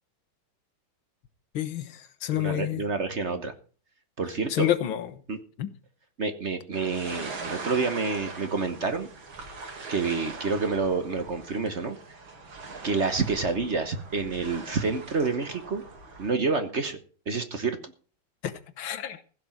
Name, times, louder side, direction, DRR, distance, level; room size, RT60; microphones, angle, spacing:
voice 1, 1.5-2.8 4.5-5.1 5.6-5.7 18.4-19.2, left 12 dB, 85° left, 1.9 m, -29 dB
voice 2, 2.3-3.5 4.2-4.7 5.3-5.4 6.2-9.1 9.9-12.0 12.8-15.8 16.2-17.0 17.3-17.9, right 4 dB, 40° right, 1.2 m, -28 dB
sound 1, 6.7-16.3, right 3 dB, 85° right, 3.3 m, -41 dB
15.5 x 6.0 x 8.7 m
omnidirectional pair, 2.1 m